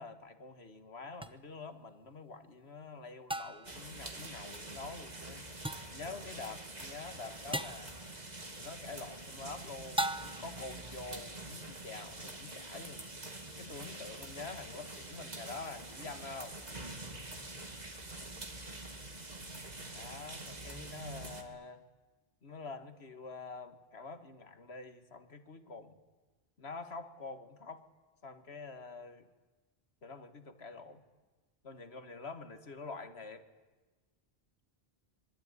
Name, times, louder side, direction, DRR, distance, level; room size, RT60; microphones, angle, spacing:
voice 1, 0.0-5.5 5.9-7.9 8.6-13.1 13.6-16.6 19.9-21.8 22.4-25.9 26.6-27.8 28.2-29.3 30.0-31.0 31.6-33.4, left 4 dB, 75° left, 9 dB, 2.1 m, -46 dB
sound 1, 1.2-1.3 3.3-3.8 5.6-6.0 7.5-7.9 10.0-10.6, right 1 dB, 5° right, 0.9 m, -36 dB
sound 2, 3.6-21.4, right 2 dB, 40° right, 2.5 m, -46 dB
25.0 x 23.5 x 9.8 m, 1.2 s
omnidirectional pair, 1.1 m